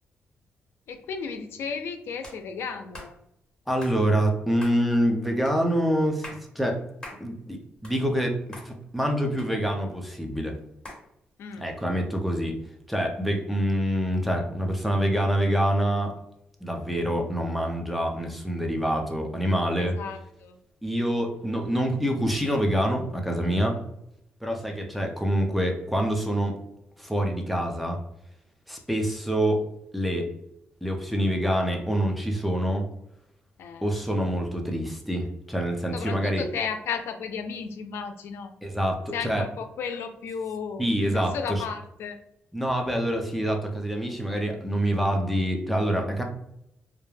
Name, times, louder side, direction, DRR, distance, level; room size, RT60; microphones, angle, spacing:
voice 1, 0.9-3.1 11.4-11.7 19.8-20.6 33.6-33.9 35.9-38.5 39.1-42.2, left 6 dB, 85° left, 8 dB, 0.4 m, -34 dB
sound 1, 2.2-2.4 2.9-3.1 3.8-4.0 4.6-4.8 5.5-5.6 6.1-6.4 7.0-7.2 7.6-8.3 8.5-8.7 9.4-9.9 10.8-11.0, left 1 dB, 20° left, 1.1 m, -42 dB
voice 2, 3.7-6.3 6.5-6.8 7.2-10.5 11.6-12.6 12.9-16.1 16.6-19.9 20.8-23.8 24.4-26.6 27.0-28.0 28.7-29.6 29.9-30.3 30.8-32.8 33.8-36.4 38.6-39.4 40.8-41.6 42.5-46.2, equal, ahead, 2 dB, 0.5 m, -26 dB
2.3 x 2.1 x 3.1 m, 0.78 s
cardioid pair, 100°, 4 cm